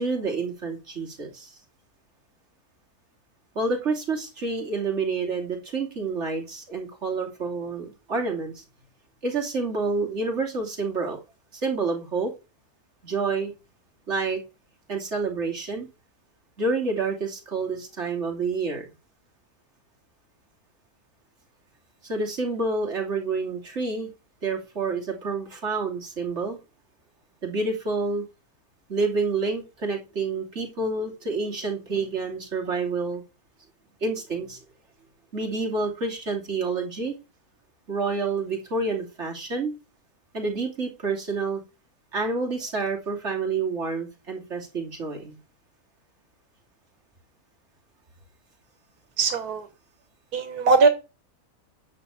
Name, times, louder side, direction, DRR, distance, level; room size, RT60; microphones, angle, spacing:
voice 1, 0.0-1.6 3.5-8.6 9.2-11.2 11.5-12.3 13.0-13.5 14.1-14.4 14.9-15.9 16.6-18.8 22.0-24.1 24.4-26.6 27.4-28.3 28.9-33.2 34.0-34.6 35.3-37.2 37.9-39.7 40.3-41.6 42.1-45.4, right 3 dB, 45° right, 3.0 m, -28 dB
voice 2, 49.2-49.7 50.3-50.9, right 4 dB, 85° right, 1.7 m, -20 dB
10.5 x 6.6 x 6.9 m
omnidirectional pair, 1.6 m